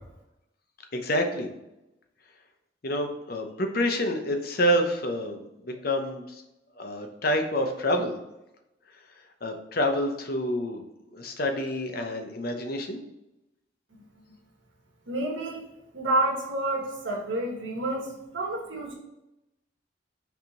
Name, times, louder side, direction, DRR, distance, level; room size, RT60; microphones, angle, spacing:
voice 1, 0.9-1.5 2.8-6.4 6.8-8.1 9.4-10.8 11.1-13.0, equal, 50° left, 5 dB, 0.8 m, -28 dB
voice 2, 15.1-15.6 15.9-18.9, right 1 dB, 85° right, -1 dB, 1.7 m, -29 dB
6.0 x 3.6 x 4.4 m, 0.92 s
head